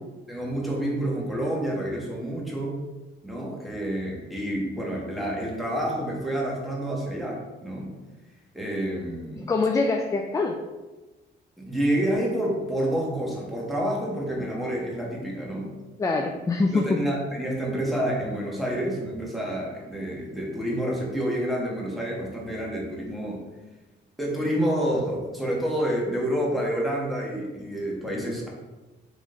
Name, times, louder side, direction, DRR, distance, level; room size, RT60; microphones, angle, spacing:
voice 1, 0.3-2.8 3.2-7.9 8.5-9.5 11.6-15.7 16.7-23.4 24.2-28.5, right 1 dB, ahead, -4 dB, 1.3 m, -28 dB
voice 2, 9.4-10.6 16.0-16.8, left 3 dB, 15° left, 2 dB, 0.4 m, -24 dB
3.7 x 3.1 x 3.8 m, 1.2 s
cardioid pair, 90°, 20 cm